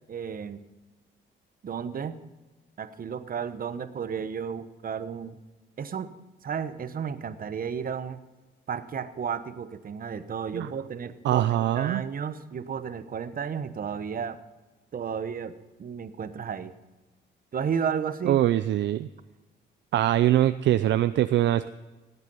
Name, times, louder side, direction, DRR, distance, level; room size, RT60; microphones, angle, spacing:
voice 1, 0.1-0.6 1.6-2.1 2.8-5.4 5.8-6.1 6.4-8.2 8.7-11.5 11.7-14.4 14.9-15.5 15.8-16.7 17.5-18.4, right 7 dB, 45° right, 11 dB, 1.0 m, -33 dB
voice 2, 11.2-12.0 18.3-19.1 19.9-21.7, right 13 dB, 65° right, 12 dB, 0.5 m, -23 dB
17.5 x 8.2 x 5.5 m, 1.2 s
cardioid pair, 90°, 20 cm